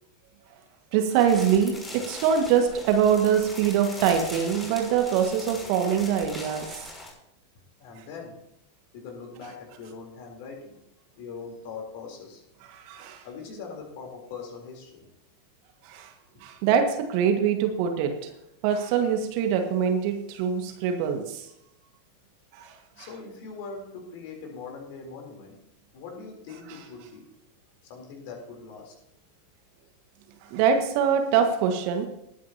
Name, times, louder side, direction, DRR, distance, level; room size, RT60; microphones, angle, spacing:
voice 1, 0.9-6.9 12.7-13.2 15.8-16.1 16.4-18.1 18.6-21.5 22.5-23.1 30.5-32.1, right 8 dB, 45° right, 5 dB, 1.8 m, -24 dB
sound 1, 1.1-7.1, left 2 dB, 10° left, 5.9 m, -41 dB
voice 2, 7.8-8.4 8.9-10.8 11.1-12.4 13.2-15.1 16.3-16.4 23.0-25.6 25.9-27.3 27.9-28.9, left 4 dB, 50° left, 2 dB, 3.7 m, -41 dB
20.0 x 9.6 x 2.9 m, 0.80 s
figure-of-eight pair, 90°, 0 cm